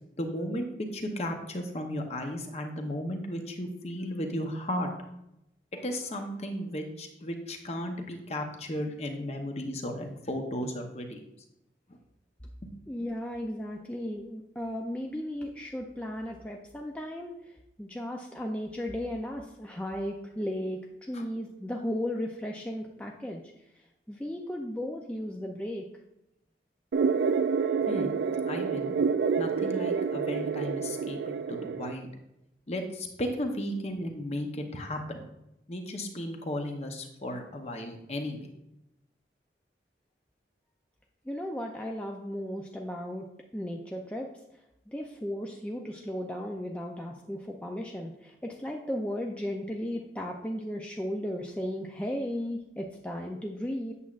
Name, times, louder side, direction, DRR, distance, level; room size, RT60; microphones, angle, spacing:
voice 1, 0.2-0.7 0.9-4.9 5.7-11.2 12.6-12.7 21.1-21.2 27.8-28.1 28.4-28.9 29.4-31.2 31.5-32.1 32.7-35.2 35.7-38.5, left 1 dB, 35° left, 4 dB, 0.8 m, -35 dB
voice 2, 12.9-23.4 24.1-25.8 41.3-43.2 43.5-44.3 44.9-53.9, equal, 5° left, 0 dB, 0.4 m, -35 dB
sound 1, 26.9-31.9, right 5 dB, 75° right, 0.3 m, -28 dB
8.3 x 7.1 x 2.4 m, 0.85 s
head